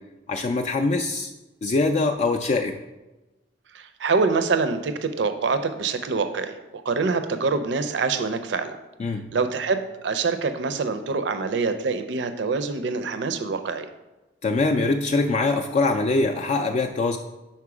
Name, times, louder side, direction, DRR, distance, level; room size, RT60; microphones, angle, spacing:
voice 1, 0.3-1.3 1.6-2.8 9.0-9.3 14.4-17.2, left 3 dB, 40° left, 3 dB, 0.3 m, -23 dB
voice 2, 3.7-8.7 9.3-13.9, right 4 dB, 70° right, 9 dB, 0.5 m, -25 dB
5.8 x 4.4 x 4.8 m, 1.1 s
head